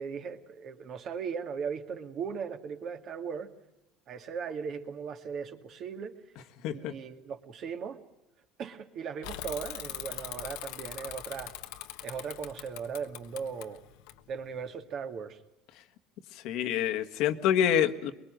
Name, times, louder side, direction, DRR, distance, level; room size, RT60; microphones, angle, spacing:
voice 1, 0.0-3.5 4.1-6.2 6.7-8.0 8.6-11.5 12.0-13.8 14.3-15.4, right 6 dB, 45° right, 6 dB, 2.3 m, -38 dB
Bicycle / Mechanisms, 9.2-14.7, left 13 dB, 80° left, 1.3 m, -42 dB
voice 2, 16.3-18.1, left 9 dB, 65° left, 8 dB, 1.6 m, -27 dB
24.0 x 22.0 x 9.1 m, 0.90 s
cardioid pair, 125°, 0 cm